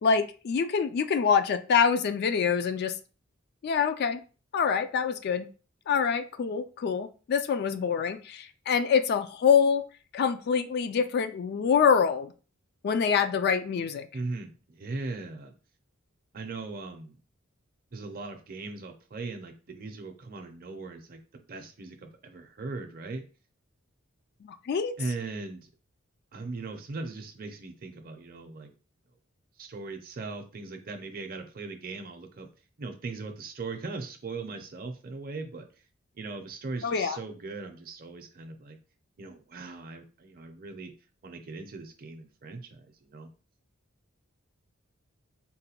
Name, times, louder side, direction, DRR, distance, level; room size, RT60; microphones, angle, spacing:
voice 1, 0.0-2.9 3.6-4.2 4.5-5.5 5.9-9.8 10.1-12.3 12.8-14.1 24.4-24.9 36.8-37.2, left 6 dB, 50° left, 10 dB, 0.3 m, -25 dB
voice 2, 14.1-15.5 16.3-17.2 17.9-21.2 21.5-23.2 25.0-25.7 26.3-28.7 29.6-32.5 32.8-35.7 36.1-38.8 39.2-40.9 41.2-43.3, right 3 dB, 45° right, 5 dB, 0.5 m, -39 dB
3.9 x 2.2 x 2.8 m, 0.35 s
head